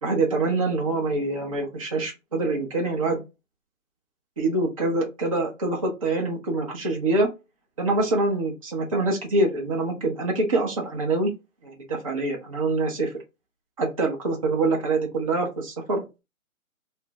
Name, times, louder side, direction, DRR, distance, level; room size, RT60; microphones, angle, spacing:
voice 1, 0.0-3.2 4.4-7.3 7.8-11.3 11.6-13.1 13.8-16.2, right 2 dB, 25° right, -1 dB, 0.6 m, -25 dB
2.5 x 2.0 x 3.3 m, 0.25 s
figure-of-eight pair, 150°, 42 cm